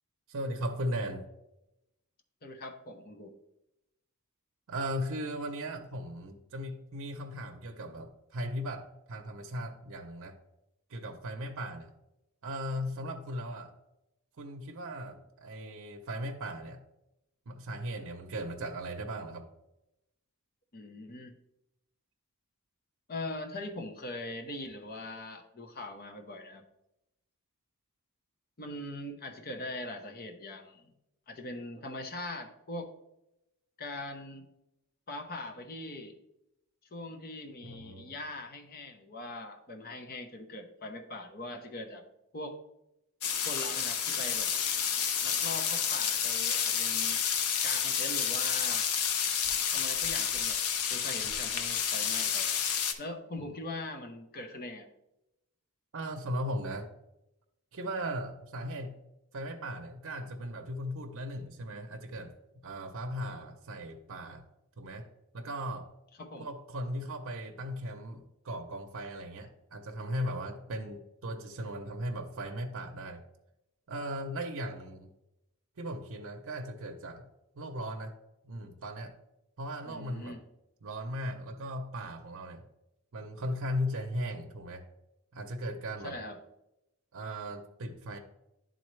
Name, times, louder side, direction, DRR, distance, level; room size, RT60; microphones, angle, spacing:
voice 1, 0.3-1.3 4.7-10.4 10.9-11.9 12.4-13.7 14.4-16.8 17.5-19.5 37.6-38.1 53.4-53.5 55.9-56.9 57.7-59.0 59.3-62.3 62.6-64.4 64.8-65.1 65.3-65.9 66.4-73.2 73.9-75.1 75.8-77.3 77.6-78.2 78.4-79.1 79.6-80.4 80.8-82.7 83.1-84.9 85.3-86.2 87.1-88.2, equal, 65° right, 4 dB, 0.6 m, -37 dB
voice 2, 2.4-3.4 20.7-21.3 23.1-26.6 28.6-30.9 31.3-32.9 33.8-34.5 35.1-36.2 36.9-42.0 42.3-42.6 43.4-44.5 45.2-47.2 47.6-48.9 49.7-50.6 50.9-52.6 53.0-54.9 66.2-66.5 79.8-80.4 86.0-86.4, left 2 dB, 45° left, 5 dB, 0.8 m, -41 dB
sound 1, 43.2-52.9, left 7 dB, 85° left, 0.6 m, -30 dB
10.5 x 3.9 x 3.1 m, 0.88 s
head